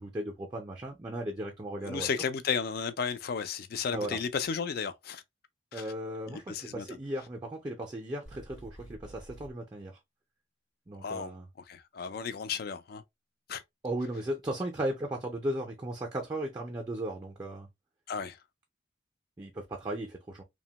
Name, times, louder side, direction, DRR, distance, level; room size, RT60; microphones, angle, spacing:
voice 1, 0.0-2.1 3.9-4.2 5.7-10.0 10.9-11.5 13.8-17.7 19.4-20.4, right 1 dB, 20° right, 0.4 m, -36 dB
voice 2, 1.8-5.2 5.7-5.8 6.3-6.9 11.0-11.3 11.7-13.0 13.5-13.6 18.1-18.4, left 6 dB, 50° left, 0.3 m, -33 dB
sound 1, 8.2-9.5, right 1 dB, 70° left, 1.0 m, -49 dB
2.8 x 2.1 x 2.7 m
head